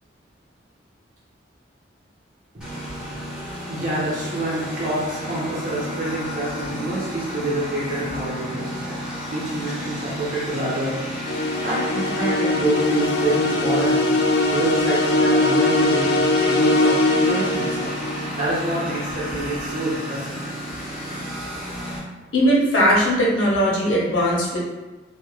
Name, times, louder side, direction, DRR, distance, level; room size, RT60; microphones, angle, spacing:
Engine, 2.6-22.0, equal, 5° right, 0.8 m, -32 dB
voice 1, 3.7-9.0 9.3-11.0 11.6-14.0 14.5-17.9 18.3-20.4 21.0-21.1, right 1 dB, 45° right, -6 dB, 0.8 m, -27 dB
sound 1, 11.3-18.3, left 2 dB, 55° left, 0.3 m, -21 dB
voice 2, 22.3-24.6, equal, 85° left, -4 dB, 0.8 m, -19 dB
2.4 x 2.4 x 3.0 m, 1.2 s
head